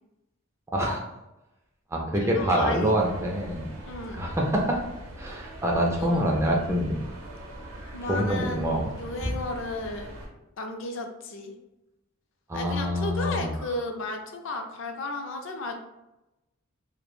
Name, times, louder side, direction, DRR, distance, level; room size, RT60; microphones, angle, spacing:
voice 1, 0.7-1.0 1.9-3.7 4.1-4.8 5.2-7.0 8.1-8.9 9.2-9.4 12.5-13.5, equal, 15° right, -1 dB, 0.3 m, -26 dB
voice 2, 2.1-2.9 3.9-4.2 6.0-6.4 7.9-10.1 10.6-11.5 12.5-15.8, left 2 dB, 60° left, 4 dB, 0.4 m, -34 dB
sound 1, 3.0-10.3, right 1 dB, 90° right, 0.7 m, -42 dB
2.2 x 2.1 x 3.0 m, 0.95 s
head